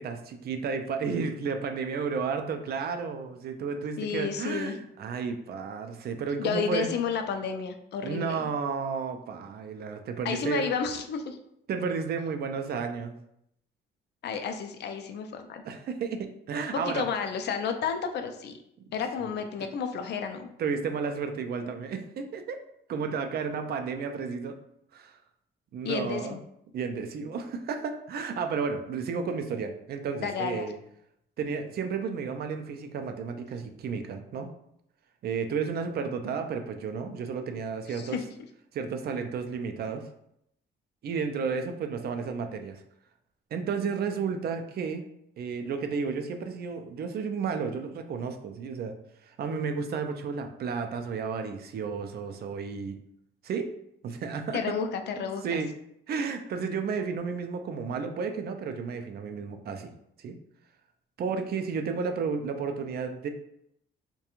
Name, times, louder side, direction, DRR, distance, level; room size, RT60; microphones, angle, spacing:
voice 1, 0.0-6.9 8.0-10.6 11.7-13.1 15.7-17.1 19.2-19.4 20.6-22.6 22.9-24.6 24.9-25.2 25.7-26.4 26.7-30.8 31.4-34.5 35.2-38.2 38.7-40.0 41.0-42.8 43.5-45.0 45.4-49.0 49.2-53.0 53.4-53.7 54.0-54.6 55.2-55.7 56.1-59.9 60.2-60.3 61.2-63.3, right 5 dB, 55° right, 6 dB, 0.4 m, -32 dB
voice 2, 4.0-4.8 6.4-8.5 10.2-11.4 14.2-15.6 16.9-18.5 18.9-20.5 25.8-26.4 30.2-30.7 37.9-38.2 54.5-55.6, left 6 dB, 60° left, 7 dB, 0.4 m, -31 dB
2.4 x 2.2 x 2.9 m, 0.76 s
cardioid pair, 90°, 20 cm